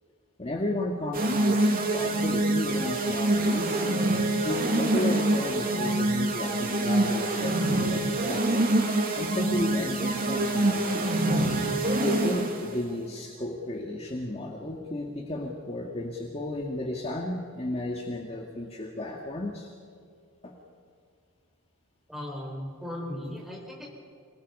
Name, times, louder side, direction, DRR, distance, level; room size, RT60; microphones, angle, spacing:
voice 1, 0.4-3.9 4.4-8.7 9.2-11.1 12.0-19.7 20.4-20.5, left 1 dB, 25° left, -1 dB, 1.9 m, -33 dB
sound 1, 1.1-12.7, right 2 dB, 40° right, 2.4 m, -25 dB
voice 2, 22.1-24.0, left 1 dB, ahead, -2 dB, 5.2 m, -37 dB
27.0 x 20.0 x 5.5 m, 2.2 s
head